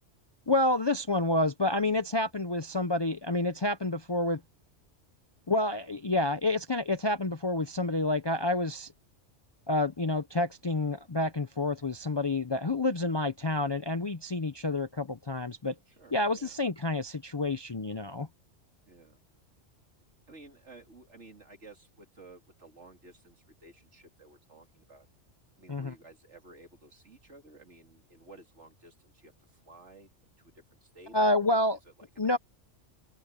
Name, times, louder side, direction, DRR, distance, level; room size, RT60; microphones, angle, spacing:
voice 1, 0.5-4.4 5.5-8.9 9.7-15.7 16.1-18.3 25.7-25.9 31.1-31.8 32.2-32.4, left 2 dB, 30° left, 0.5 m, -29 dB
voice 2, 15.9-16.6 18.8-19.2 20.3-25.1 25.6-30.1 30.4-32.4, right 2 dB, 70° right, 3.7 m, -54 dB
open air
omnidirectional pair, 1.2 m